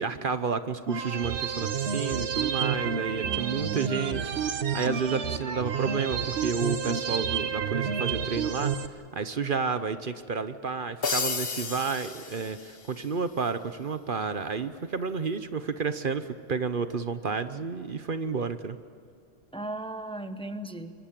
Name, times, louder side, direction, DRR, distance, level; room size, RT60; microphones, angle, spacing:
voice 1, 0.0-18.8, right 5 dB, 55° right, 11 dB, 1.0 m, -31 dB
sound 1, 0.9-8.9, right 7 dB, 75° right, 1.3 m, -30 dB
voice 2, 3.2-4.2 19.5-20.9, right 2 dB, 5° left, 9 dB, 1.0 m, -37 dB
sound 2, 11.0-13.1, left 5 dB, 60° left, 1.4 m, -32 dB
26.0 x 23.5 x 7.6 m, 2.5 s
omnidirectional pair, 1.1 m